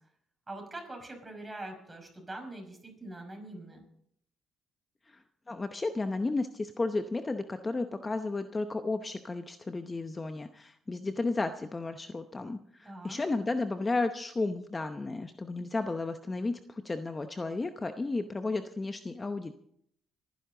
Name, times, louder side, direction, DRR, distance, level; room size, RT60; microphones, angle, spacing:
voice 1, 0.5-3.8 12.8-13.2, right 2 dB, 20° right, 3 dB, 5.5 m, -43 dB
voice 2, 5.1-19.5, left 3 dB, 25° left, 8 dB, 0.8 m, -33 dB
25.5 x 10.5 x 3.8 m, 0.70 s
cardioid pair, 90°, 0 cm